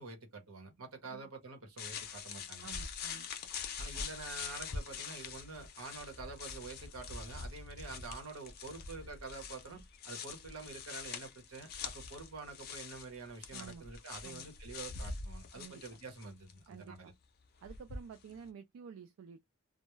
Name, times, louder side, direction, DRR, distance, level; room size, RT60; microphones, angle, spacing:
voice 1, 0.0-2.7 3.8-17.1, right 3 dB, 85° right, 1.0 m, -47 dB
sound 1, 1.8-16.6 17.6-18.4, left 5 dB, 45° left, 0.5 m, -44 dB
voice 2, 2.6-3.3 3.9-4.1 13.5-13.9 14.2-14.5 15.5-15.8 16.7-17.1 17.6-19.4, right 6 dB, 70° right, 0.3 m, -51 dB
2.2 x 2.1 x 3.0 m
head